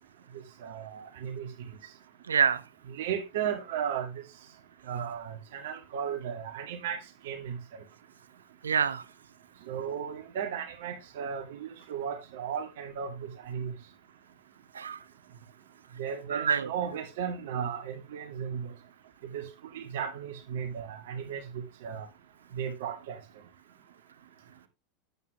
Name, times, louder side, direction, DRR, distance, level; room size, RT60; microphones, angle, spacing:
voice 1, 0.6-1.5 2.9-4.2 4.9-7.0 7.2-7.6 9.7-13.7 16.0-18.7 19.2-19.5 19.7-22.1 22.5-23.2, right 8 dB, 60° right, 2.0 m, -35 dB
voice 2, 2.3-2.6 8.6-9.0 14.7-15.0 16.3-16.7, right 6 dB, 80° right, 0.7 m, -26 dB
9.3 x 8.5 x 2.9 m
figure-of-eight pair, 85°, 0 cm